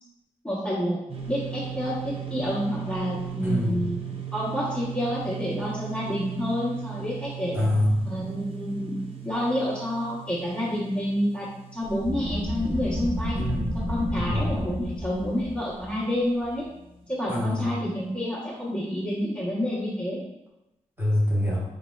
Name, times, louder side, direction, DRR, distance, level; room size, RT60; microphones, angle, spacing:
voice 1, 0.4-1.0 1.3-4.0 4.3-7.6 8.0-13.4 13.7-16.7 17.1-20.2, equal, 10° left, -10 dB, 1.0 m, -29 dB
sound 1, 1.1-14.6, right 11 dB, 45° right, 0.6 m, -38 dB
voice 2, 3.4-3.8 7.5-7.9 13.3-13.6 14.1-14.4 17.3-17.7 21.0-21.6, left 1 dB, 15° right, -7 dB, 1.2 m, -25 dB
sound 2, 11.8-17.2, equal, 60° right, 1.1 m, -31 dB
5.2 x 3.4 x 2.3 m, 0.91 s
wide cardioid pair, 175°, 14 cm